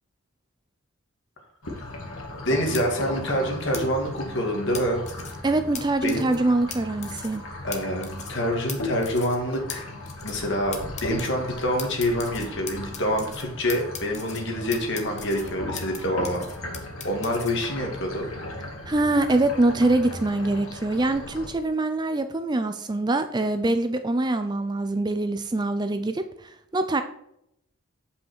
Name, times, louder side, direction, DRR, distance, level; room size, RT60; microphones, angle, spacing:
sound 1, 1.6-21.5, left 1 dB, 70° left, 2.0 m, -37 dB
voice 1, 2.4-5.0 6.0-6.3 7.6-9.8 10.2-16.4 17.0-18.3, equal, 55° left, 2 dB, 2.1 m, -26 dB
sound 2, 2.7-2.8 3.7-3.8 4.7-5.3 5.7-5.8 6.1-6.4 6.7-6.8 7.0-7.4 7.7-8.4 8.7-8.8 9.0-9.4 9.7-9.8 10.1-10.5 10.7-11.3 11.8-13.4 13.7-14.4 14.7-16.0 16.2-17.5, left 7 dB, 30° left, 1.0 m, -38 dB
voice 2, 5.4-7.4 18.9-26.2 26.7-27.0, right 2 dB, 20° right, 9 dB, 0.4 m, -24 dB
7.8 x 5.6 x 4.6 m, 0.76 s
head